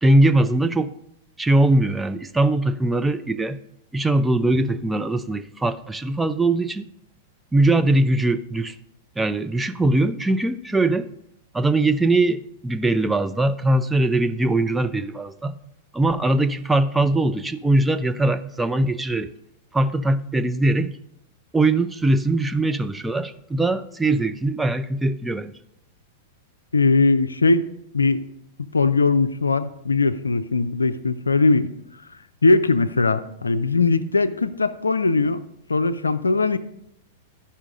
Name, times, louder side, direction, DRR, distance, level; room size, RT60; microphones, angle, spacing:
voice 1, 0.0-0.9 1.4-3.6 3.9-6.9 7.5-8.8 9.2-11.1 11.5-15.6 15.9-19.3 19.7-21.0 21.5-25.5, right 2 dB, 10° right, 0.4 m, -21 dB
voice 2, 26.7-27.6 27.9-28.2 28.7-31.7 32.4-35.4 35.7-36.6, left 3 dB, 85° left, 0.4 m, -20 dB
12.5 x 5.6 x 3.7 m
figure-of-eight pair, 100°, 0 cm